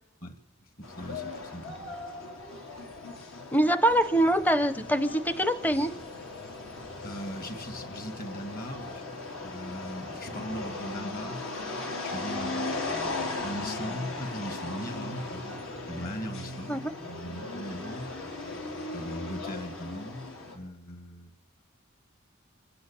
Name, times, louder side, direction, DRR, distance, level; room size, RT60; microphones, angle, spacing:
sound 1, 0.8-20.6, left 2 dB, 85° left, 4.8 m, -38 dB
voice 1, 0.8-1.8 7.0-9.0 9.4-12.7 13.4-18.1 18.9-21.3, equal, 45° left, 8 dB, 1.9 m, -39 dB
voice 2, 3.5-5.9 16.7-16.9, right 1 dB, 10° left, 12 dB, 0.7 m, -24 dB
26.0 x 12.0 x 8.8 m, 0.94 s
head